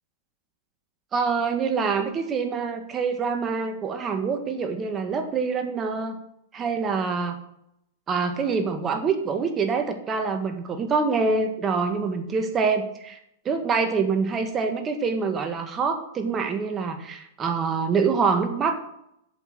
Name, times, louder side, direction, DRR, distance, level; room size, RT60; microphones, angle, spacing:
voice 1, 1.1-6.2 6.5-7.4 8.1-13.2 13.4-18.8, right 5 dB, 25° right, 7 dB, 1.6 m, -25 dB
7.9 x 7.3 x 7.1 m, 0.78 s
hypercardioid pair, 115°, 0 cm